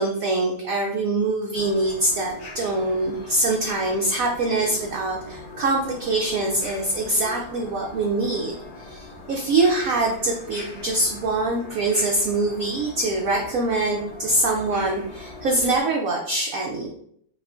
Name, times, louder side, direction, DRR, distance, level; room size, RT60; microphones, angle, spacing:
voice 1, 0.0-16.9, right 2 dB, 75° right, 0 dB, 0.8 m, -24 dB
sound 1, 1.5-15.8, left 2 dB, 75° left, 1.7 m, -41 dB
6.0 x 2.4 x 2.5 m, 0.66 s
omnidirectional pair, 2.1 m